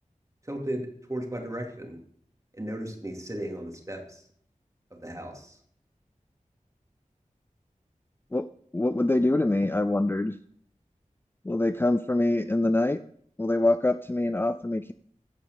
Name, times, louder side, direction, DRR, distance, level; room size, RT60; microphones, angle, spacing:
voice 1, 0.4-2.0 2.5-4.2 5.0-5.6, right 1 dB, 25° right, 1 dB, 2.8 m, -35 dB
voice 2, 8.7-10.4 11.4-13.0 13.4-14.9, left 2 dB, 15° left, 11 dB, 0.4 m, -24 dB
15.5 x 5.4 x 7.0 m, 0.63 s
wide cardioid pair, 50°, 13 cm